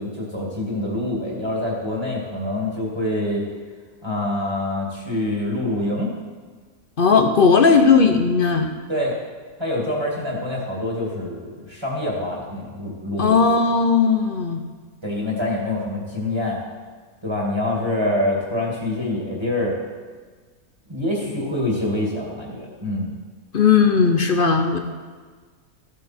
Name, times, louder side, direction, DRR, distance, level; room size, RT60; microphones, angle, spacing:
voice 1, 0.0-3.5 4.0-6.1 8.9-9.1 9.6-13.4 15.0-16.6 17.2-19.8 20.9-23.1, left 1 dB, 15° right, -3 dB, 2.0 m, -25 dB
voice 2, 7.0-8.7 13.2-14.6 23.5-24.8, left 5 dB, 50° left, 6 dB, 0.7 m, -16 dB
14.0 x 8.2 x 4.3 m, 1.5 s
omnidirectional pair, 1.6 m